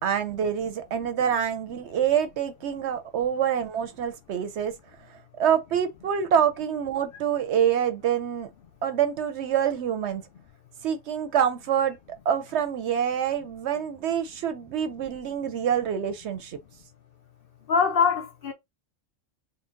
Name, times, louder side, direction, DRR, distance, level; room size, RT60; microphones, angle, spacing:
voice 1, 0.0-4.7 5.4-8.5 8.8-10.2 10.8-12.0 12.3-16.6, right 8 dB, 65° right, 0.8 m, -26 dB
voice 2, 17.7-18.5, left 6 dB, 55° left, 0.7 m, -23 dB
3.9 x 2.1 x 3.7 m
omnidirectional pair, 1.3 m